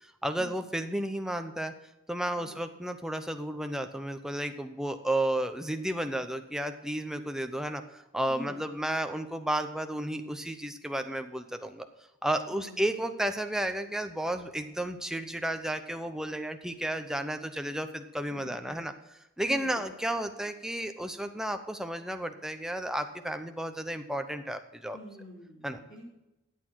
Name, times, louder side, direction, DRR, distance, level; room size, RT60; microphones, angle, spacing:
voice 1, 0.0-1.7 2.1-11.9 12.2-18.9 19.4-25.0 25.6-25.8, right 1 dB, ahead, 6 dB, 0.7 m, -32 dB
voice 2, 18.3-18.7 19.4-20.0 24.9-26.1, equal, 45° left, -6 dB, 4.2 m, -46 dB
12.5 x 8.5 x 4.6 m, 0.95 s
head